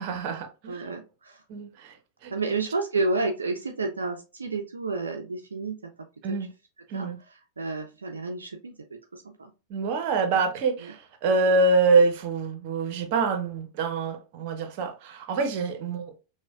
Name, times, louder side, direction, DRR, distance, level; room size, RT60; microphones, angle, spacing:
voice 1, 0.0-0.8 1.5-1.9 2.2-2.3 6.2-6.5 6.9-7.2 9.7-16.1, right 3 dB, 45° right, 0.7 m, -25 dB
voice 2, 0.7-1.4 2.3-5.8 6.3-6.5 6.9-8.7 9.1-9.5 10.8-10.9, right 3 dB, 75° right, 0.4 m, -31 dB
5.9 x 2.1 x 2.3 m
figure-of-eight pair, 90°, 0 cm